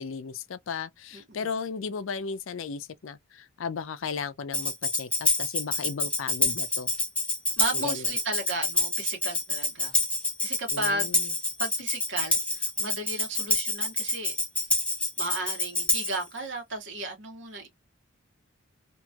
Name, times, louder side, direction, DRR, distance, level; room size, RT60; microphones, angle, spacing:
voice 1, 0.0-6.9 7.7-8.1 10.7-11.3, left 5 dB, 75° left, 0.5 m, -35 dB
voice 2, 1.1-1.5 7.6-10.0 10.4-11.2 11.6-14.3 15.2-17.7, right 2 dB, 60° right, 1.4 m, -34 dB
Tambourine, 4.5-16.2, left 2 dB, 5° left, 0.7 m, -27 dB
2.9 x 2.8 x 2.2 m
head